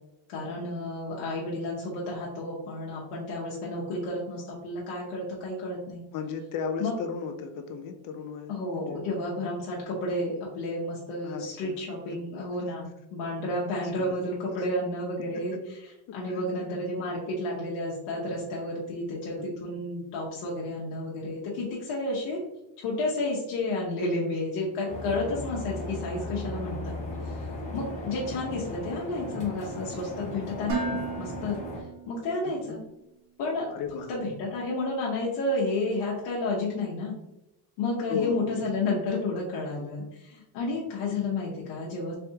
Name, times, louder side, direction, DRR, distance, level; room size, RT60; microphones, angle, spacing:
voice 1, 0.3-6.0 6.8-6.9 8.5-15.6 16.1-22.4 22.8-26.9 27.2-27.3 27.7-31.6 32.1-32.8 33.4-33.7 34.1-37.1 37.8-42.1, left 2 dB, 90° left, -5 dB, 1.0 m, -31 dB
voice 2, 6.1-9.0 11.2-11.8 12.1-12.2 13.8-14.2 14.6-14.7 15.3-15.6 16.1-17.0 19.1-19.5 32.4-32.8 33.7-34.1 38.1-38.6, left 5 dB, 45° left, 6 dB, 0.4 m, -36 dB
sound 1, 24.9-31.8, left 1 dB, 15° left, 0.8 m, -37 dB
Dishes pots and pans, 30.7-32.8, right 5 dB, 35° right, 0.9 m, -34 dB
3.4 x 3.4 x 2.8 m, 0.93 s
cardioid pair, 170°, 48 cm